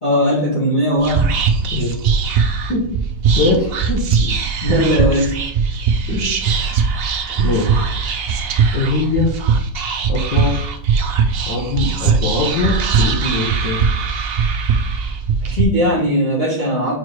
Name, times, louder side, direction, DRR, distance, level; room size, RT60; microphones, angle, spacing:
voice 1, 0.0-1.3 4.2-4.3 4.6-5.3 15.5-17.0, equal, 25° left, -10 dB, 2.4 m, -18 dB
Whispering, 1.0-15.6, right 5 dB, 70° right, 0.5 m, -19 dB
voice 2, 3.4-4.0 6.1-6.3 7.4-7.9 8.7-9.3 10.1-10.6 11.5-13.8, left 3 dB, 85° left, -4 dB, 1.9 m, -21 dB
4.7 x 4.5 x 4.7 m, 0.73 s
omnidirectional pair, 1.8 m